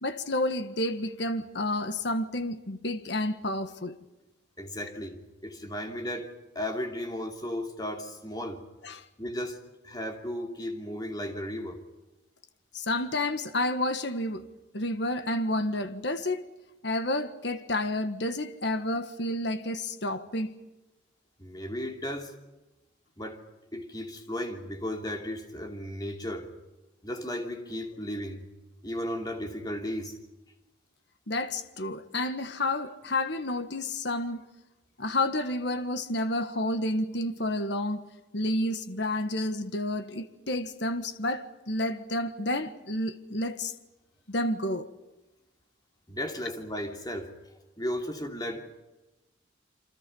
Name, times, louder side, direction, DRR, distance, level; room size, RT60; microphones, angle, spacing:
voice 1, 0.0-3.9 8.8-9.0 12.7-14.4 14.7-16.5 16.8-20.5 31.3-34.4 35.0-38.0 38.3-43.7 44.3-44.9, left 1 dB, 60° left, 1.6 m, -30 dB
voice 2, 4.6-8.6 9.2-11.8 21.4-22.3 23.2-23.4 23.7-26.5 27.0-28.5 28.8-30.2 46.1-47.3 47.8-48.8, equal, 20° left, 2.8 m, -35 dB
28.5 x 25.5 x 5.5 m
head